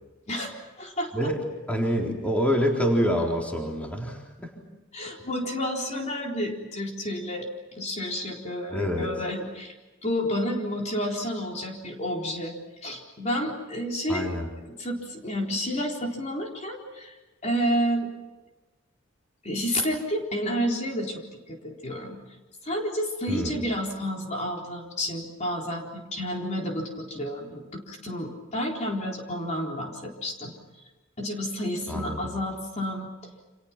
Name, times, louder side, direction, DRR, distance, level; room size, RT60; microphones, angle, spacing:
voice 1, 0.3-1.3 4.9-9.7 10.0-12.5 12.8-14.3 14.6-17.1 17.4-18.1 19.4-22.2 22.6-30.5 31.2-33.1, equal, 35° left, 0 dB, 4.0 m, -30 dB
voice 2, 1.7-4.5 8.7-9.1 14.1-14.5 23.3-23.6 31.9-32.2, equal, 5° left, 0 dB, 4.0 m, -26 dB
29.5 x 27.5 x 6.0 m, 1.1 s
head